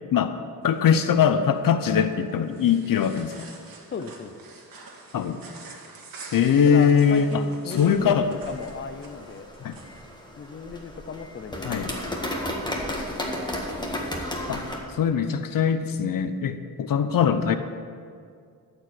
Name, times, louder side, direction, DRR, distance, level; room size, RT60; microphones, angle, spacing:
voice 1, 0.6-3.3 5.1-5.4 6.3-7.3 7.7-8.4 9.6-9.7 11.6-11.9 14.5-14.6 15.0-17.5, left 7 dB, 65° left, 10 dB, 0.7 m, -21 dB
sound 1, 0.6-10.1, right 3 dB, 65° right, 1.8 m, -47 dB
voice 2, 3.9-4.3 6.6-9.5 10.4-12.7, left 5 dB, 35° left, 9 dB, 0.6 m, -36 dB
sound 2, 7.8-14.8, left 1 dB, 10° left, 1.6 m, -33 dB
13.5 x 4.9 x 7.7 m, 2.2 s
cardioid pair, 105°, 37 cm